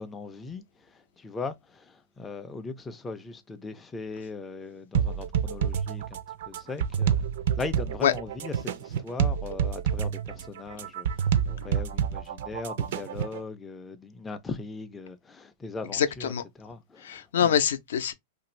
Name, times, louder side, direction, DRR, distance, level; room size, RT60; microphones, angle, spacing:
voice 1, 0.0-6.2 6.5-7.2 7.6-17.6, left 4 dB, 10° left, 0.3 m, -39 dB
sound 1, 4.9-13.4, right 8 dB, 65° right, 0.4 m, -28 dB
voice 2, 15.9-16.4 17.0-18.1, left 8 dB, 85° left, 0.5 m, -24 dB
2.6 x 2.5 x 3.0 m
supercardioid pair, 155°, 0 cm